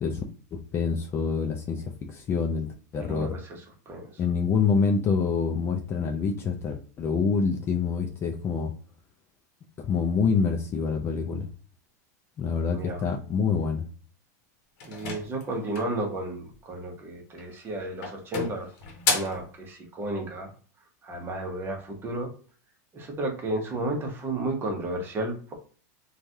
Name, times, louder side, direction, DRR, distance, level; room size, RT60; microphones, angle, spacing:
voice 1, 0.5-3.4 4.2-8.7 9.8-11.5 12.4-13.8, left 5 dB, 25° left, 3 dB, 0.4 m, -26 dB
voice 2, 3.0-3.6 3.9-4.1 12.7-13.0 14.8-18.7 19.1-20.5 21.0-22.3 22.9-25.5, right 2 dB, 25° right, 2 dB, 0.9 m, -32 dB
sound 1, 14.8-16.0 17.3-17.7 18.0-19.5, left 4 dB, 55° left, 0.9 m, -31 dB
3.1 x 2.3 x 2.6 m, 0.42 s
supercardioid pair, 130°, 9 cm